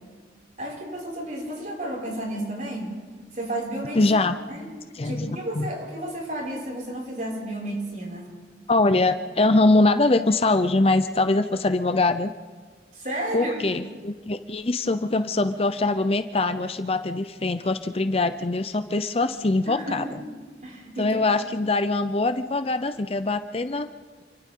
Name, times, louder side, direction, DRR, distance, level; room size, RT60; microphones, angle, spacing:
voice 1, 0.6-3.0 3.3-4.1 4.5-4.6 5.0-8.3 12.9-13.8 19.7-20.2 20.6-21.2, right 1 dB, 45° right, -2 dB, 5.8 m, -32 dB
voice 2, 3.9-4.3 5.0-5.7 8.7-12.3 13.3-20.1 21.0-23.9, left 2 dB, 35° left, 10 dB, 0.6 m, -23 dB
28.5 x 24.0 x 3.8 m, 1.5 s
head